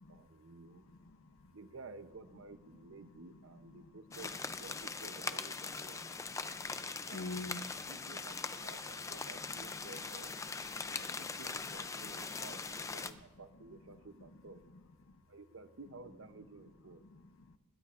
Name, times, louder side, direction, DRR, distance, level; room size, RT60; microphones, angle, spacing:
voice 1, 0.1-0.9 1.5-6.2 7.1-10.4 10.9-14.6 15.3-17.0, right 3 dB, 70° right, 11 dB, 0.7 m, -53 dB
voice 2, 1.0-1.5 6.5-6.8 7.1-7.9 10.8-10.9 15.1-15.2 17.1-17.6, left 2 dB, 80° left, 11 dB, 0.7 m, -46 dB
sound 1, 4.1-13.1, left 4 dB, 15° left, 0.4 m, -41 dB
21.0 x 15.5 x 2.5 m, 1.2 s
head